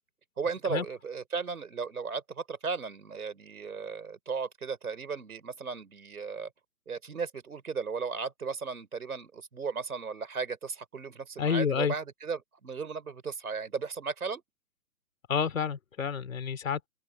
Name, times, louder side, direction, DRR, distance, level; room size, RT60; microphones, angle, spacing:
voice 1, 0.4-6.5 6.9-14.4, right 5 dB, 65° right, 5.3 m, -35 dB
voice 2, 11.4-11.9 15.3-16.9, left 6 dB, 55° left, 3.3 m, -29 dB
figure-of-eight pair, 135°, 48 cm